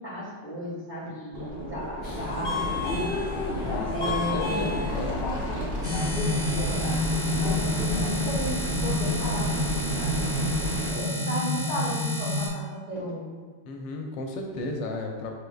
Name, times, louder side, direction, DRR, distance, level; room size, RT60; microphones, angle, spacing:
voice 1, 0.0-3.1 3.9-5.7 6.5-7.0 7.4-10.3 10.9-13.4, equal, 30° right, -7 dB, 1.0 m, -35 dB
sound 1, 1.3-10.9, right 1 dB, 50° right, 0.7 m, -33 dB
Subway metro underground, 2.0-8.1, left 3 dB, 60° left, 1.7 m, -32 dB
voice 2, 3.5-5.3 10.9-11.1 13.6-15.3, left 2 dB, 90° left, 2 dB, 1.3 m, -34 dB
sound 2, 5.8-12.5, left 2 dB, 30° left, 1.6 m, -28 dB
6.2 x 3.3 x 2.3 m, 1.4 s
omnidirectional pair, 1.9 m